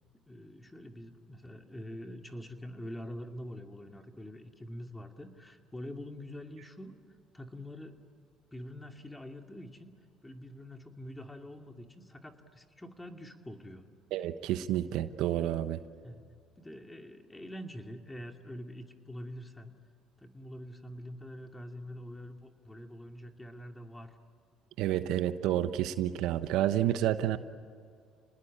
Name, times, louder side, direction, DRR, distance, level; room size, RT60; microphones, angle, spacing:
voice 1, 0.3-6.9 7.3-8.0 8.5-9.9 10.2-13.9 16.0-16.3 16.6-19.7 20.2-24.1, equal, 10° left, 4 dB, 2.6 m, -45 dB
voice 2, 14.1-15.8 24.8-27.4, right 12 dB, 75° right, 11 dB, 1.0 m, -29 dB
29.0 x 20.0 x 8.8 m, 2.2 s
supercardioid pair, 80°, 0 cm